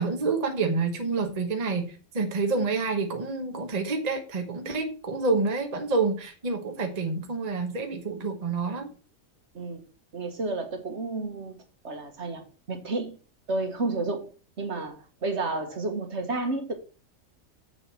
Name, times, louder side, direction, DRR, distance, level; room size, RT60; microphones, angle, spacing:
voice 1, 0.0-8.9, right 4 dB, 30° right, 1.2 m, -28 dB
voice 2, 10.1-13.2 13.5-14.3 14.6-16.7, right 3 dB, 50° right, 1.7 m, -31 dB
7.0 x 6.9 x 6.0 m
omnidirectional pair, 1.5 m